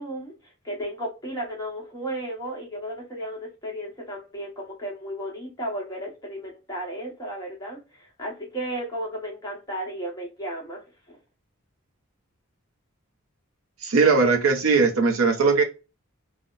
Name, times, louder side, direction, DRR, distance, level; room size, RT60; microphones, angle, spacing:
voice 1, 0.0-10.8 11.1-11.2, right 1 dB, 15° left, -3 dB, 1.0 m, -34 dB
voice 2, 13.8-15.6, right 4 dB, 85° right, 5 dB, 0.6 m, -19 dB
2.7 x 2.0 x 2.3 m, 0.30 s
head